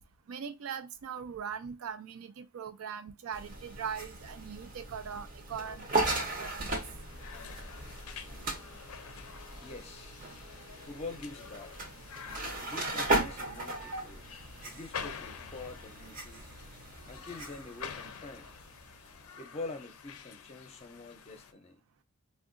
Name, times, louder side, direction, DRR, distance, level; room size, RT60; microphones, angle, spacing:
voice 1, 0.3-5.9 6.4-6.7, right 7 dB, 80° right, 0.4 m, -40 dB
sound 1, 3.3-19.4, right 2 dB, 40° right, 0.7 m, -37 dB
sound 2, 6.6-21.5, left 7 dB, 90° left, 0.4 m, -48 dB
voice 2, 9.6-10.1 10.8-11.7 12.6-14.3 14.6-16.5 17.1-18.5 19.4-21.8, left 3 dB, 30° left, 0.5 m, -45 dB
3.6 x 2.2 x 2.5 m
head